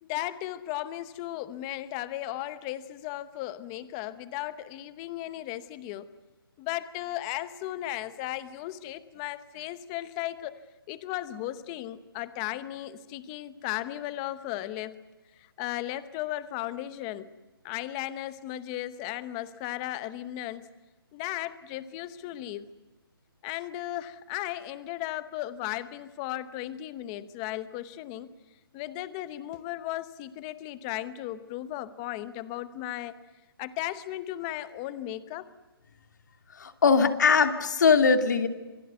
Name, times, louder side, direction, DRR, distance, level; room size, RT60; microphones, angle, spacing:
voice 1, 0.0-6.1 6.6-10.6 10.9-15.0 15.4-17.3 17.6-20.7 21.1-22.7 23.4-28.3 28.7-33.2 33.6-35.5, left 14 dB, 15° left, 15 dB, 0.8 m, -36 dB
voice 2, 36.5-38.5, left 5 dB, 50° left, 8 dB, 2.7 m, -21 dB
27.5 x 22.0 x 9.4 m, 1.1 s
hypercardioid pair, 175°, 13 cm